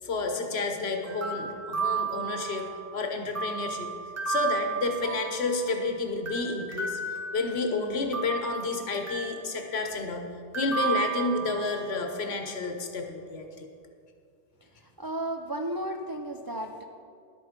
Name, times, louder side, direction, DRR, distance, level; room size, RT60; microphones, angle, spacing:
voice 1, 0.0-2.6 2.9-3.9 4.3-7.0 7.3-10.3 10.5-13.7, left 3 dB, 85° left, 4 dB, 1.3 m, -30 dB
sound 1, 1.1-2.9 3.3-5.9 6.3-7.7 8.1-9.5 10.5-12.0, right 5 dB, 15° right, 1.6 m, -33 dB
voice 2, 15.0-16.8, right 1 dB, 30° right, 3 dB, 0.4 m, -33 dB
11.5 x 8.4 x 5.2 m, 2.4 s
omnidirectional pair, 1.0 m